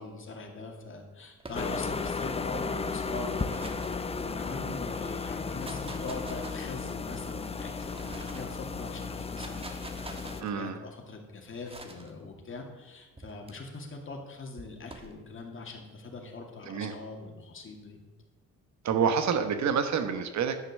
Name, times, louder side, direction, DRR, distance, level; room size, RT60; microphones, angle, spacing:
voice 1, 0.0-18.0, left 3 dB, 45° left, 2 dB, 2.4 m, -42 dB
sound 1, 1.4-2.1 3.1-4.6 5.4-7.0 7.6-8.6 9.1-10.5 11.7-12.1 13.2-13.5 14.6-15.2, right 2 dB, 20° right, 1.3 m, -46 dB
sound 2, 1.5-10.4, left 4 dB, 20° left, 0.6 m, -34 dB
voice 2, 10.4-10.8 16.7-16.9 18.8-20.6, right 6 dB, 65° right, 8 dB, 1.2 m, -28 dB
10.5 x 6.7 x 6.6 m, 1.2 s
cardioid pair, 90°, 30 cm